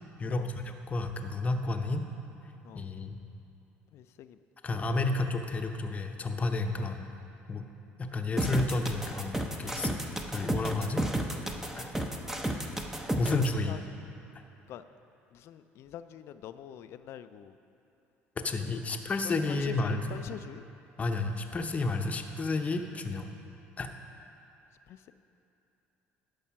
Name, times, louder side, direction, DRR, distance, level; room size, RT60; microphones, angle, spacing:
voice 1, 0.2-2.0 2.7-3.2 4.6-7.1 7.5-7.6 8.0-10.0 10.3-11.0 11.8-11.9 13.2-13.8 18.4-20.2 21.0-23.3 23.8-23.9, left 3 dB, 30° left, 5 dB, 0.8 m, -31 dB
voice 2, 3.9-4.4 6.8-6.9 13.7-13.8 14.7-14.8 15.3-17.5 19.2-20.6 24.9-25.1, left 10 dB, 65° left, 12 dB, 0.4 m, -44 dB
sound 1, 8.4-13.5, right 1 dB, 10° right, 0.7 m, -32 dB
11.0 x 5.5 x 5.8 m, 2.9 s
supercardioid pair, 95°, 5 cm